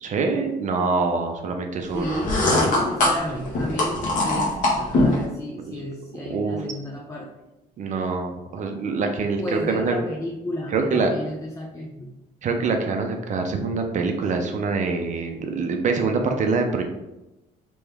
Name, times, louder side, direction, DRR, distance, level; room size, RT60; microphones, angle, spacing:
voice 1, 0.0-2.3 5.6-5.7 6.3-6.6 7.8-10.0 10.7-11.1 12.4-16.8, right 4 dB, 45° right, 4 dB, 0.5 m, -25 dB
voice 2, 1.9-7.3 9.4-12.1, left 1 dB, 20° left, -1 dB, 0.5 m, -32 dB
sound 1, 2.0-5.2, left 1 dB, 50° left, 1.1 m, -22 dB
3.4 x 3.0 x 3.3 m, 0.96 s
cardioid pair, 110°, 17 cm